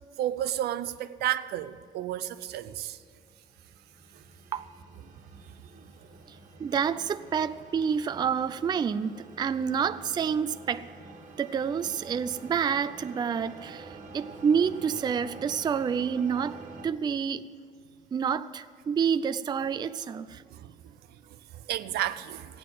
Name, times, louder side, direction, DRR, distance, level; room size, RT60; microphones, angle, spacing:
voice 1, 0.2-3.0 4.1-4.2 5.7-5.9 20.5-22.6, right 12 dB, 75° right, 0.6 m, -33 dB
sound 1, 2.8-16.9, right 3 dB, 45° right, 1.7 m, -48 dB
voice 2, 6.6-10.9 11.4-17.5 18.1-20.4, right 7 dB, 25° right, 0.4 m, -28 dB
16.0 x 9.3 x 7.8 m
cardioid pair, 110°, 17 cm